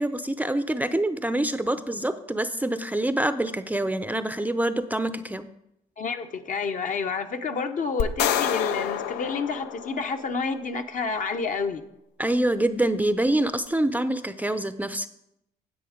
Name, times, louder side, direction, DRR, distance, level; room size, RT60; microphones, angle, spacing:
voice 1, 0.0-5.5 12.2-15.1, right 1 dB, 10° right, 12 dB, 0.6 m, -26 dB
voice 2, 6.0-11.8, left 4 dB, 50° left, 6 dB, 1.0 m, -29 dB
sound 1, 8.0-10.4, left 10 dB, 80° left, 0.6 m, -28 dB
10.0 x 7.8 x 5.0 m, 0.82 s
supercardioid pair, 80°, 17 cm